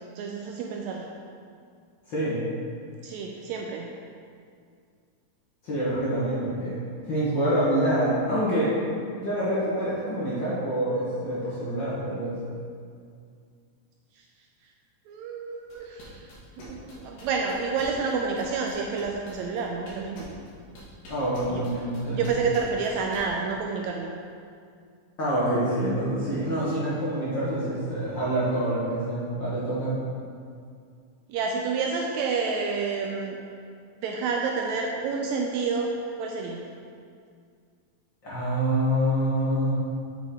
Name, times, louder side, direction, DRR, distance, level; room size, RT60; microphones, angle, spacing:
voice 1, 0.1-1.0 3.0-3.9 15.1-16.2 16.6-20.3 21.5-21.6 22.1-24.1 31.3-33.4 34.0-35.9 36.2-36.6, right 5 dB, 80° right, 1 dB, 1.7 m, -29 dB
voice 2, 2.1-2.4 5.6-6.7 7.1-8.7 9.2-12.4 21.1-22.2 25.2-30.0 38.2-39.7, right 1 dB, 50° left, -9 dB, 1.5 m, -26 dB
sound 1, 15.7-23.2, left 1 dB, 90° left, 3.1 m, -45 dB
8.1 x 5.6 x 3.7 m, 2.2 s
omnidirectional pair, 3.6 m